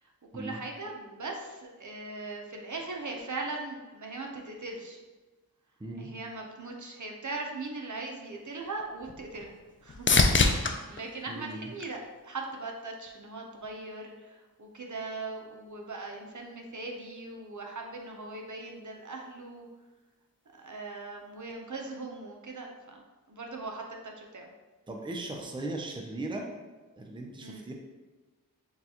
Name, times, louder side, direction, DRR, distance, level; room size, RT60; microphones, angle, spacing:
voice 1, 0.0-5.0 6.0-9.6 9.8-19.7 20.5-23.0 23.3-24.5 27.4-27.7, right 3 dB, 60° right, 1 dB, 0.7 m, -40 dB
voice 2, 5.8-6.1 11.3-11.7 24.9-26.5 27.0-27.7, right 2 dB, 15° right, 1 dB, 0.5 m, -38 dB
sound 1, 8.3-12.6 13.1-13.7 21.5-21.6, left 4 dB, 35° left, 0.4 m, -29 dB
6.6 x 2.3 x 2.8 m, 1.2 s
wide cardioid pair, 40°, 34 cm